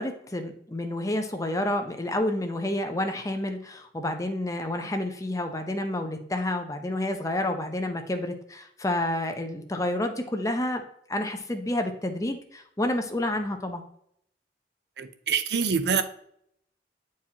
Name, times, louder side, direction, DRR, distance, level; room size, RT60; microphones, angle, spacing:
voice 1, 0.0-10.8 11.1-13.8, left 1 dB, 20° left, 0.7 m, -29 dB
voice 2, 15.0-16.0, right 6 dB, 70° right, 0.6 m, -25 dB
8.9 x 4.7 x 2.9 m
head